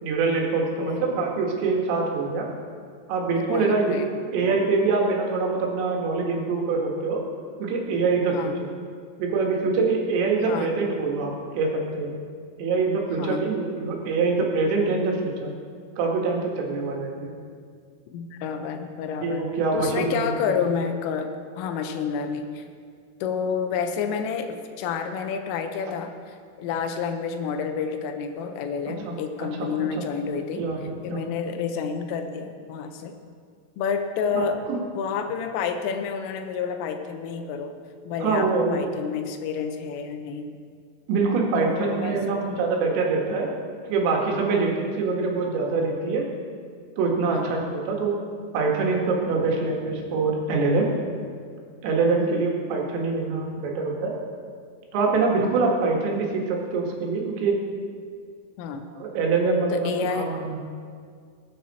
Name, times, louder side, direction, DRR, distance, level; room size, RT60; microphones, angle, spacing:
voice 1, 0.0-2.5 3.1-4.0 4.3-7.2 7.6-8.7 9.2-12.2 12.6-15.5 16.0-17.3 19.2-20.3 29.0-29.1 29.6-30.0 30.6-31.2 34.3-34.5 38.2-38.8 41.1-43.5 43.9-46.2 47.0-48.1 48.5-50.9 51.8-54.1 54.9-57.6 59.0-60.6, right 4 dB, 90° right, -1 dB, 4.4 m, -24 dB
voice 2, 3.4-4.1 8.3-8.6 10.4-10.8 13.2-13.5 18.1-22.7 23.2-30.7 31.0-33.2 33.8-37.8 38.1-40.5 41.6-42.5 44.5-44.7 47.3-47.5 52.2-52.5 58.6-58.9 59.7-60.3, left 6 dB, 90° left, 6 dB, 3.6 m, -29 dB
20.5 x 9.3 x 4.2 m, 2.1 s
omnidirectional pair, 5.6 m